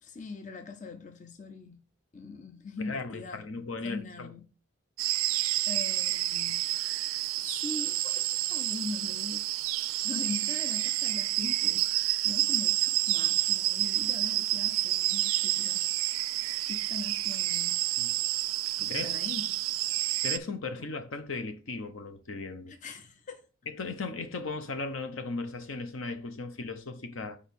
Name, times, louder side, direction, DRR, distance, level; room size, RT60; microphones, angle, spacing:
voice 1, 0.0-1.8 2.1-4.5 5.7-6.7 7.4-9.4 10.0-11.9 12.2-17.8 18.8-19.5 20.8-20.9 22.7-23.5, left 4 dB, 35° left, 0.5 m, -41 dB
voice 2, 2.8-4.3 18.0-18.1 18.9-19.2 20.2-22.8 23.7-27.4, left 3 dB, 75° left, 0.9 m, -37 dB
sound 1, 5.0-20.4, right 17 dB, 85° right, 0.3 m, -29 dB
5.0 x 4.7 x 5.3 m
head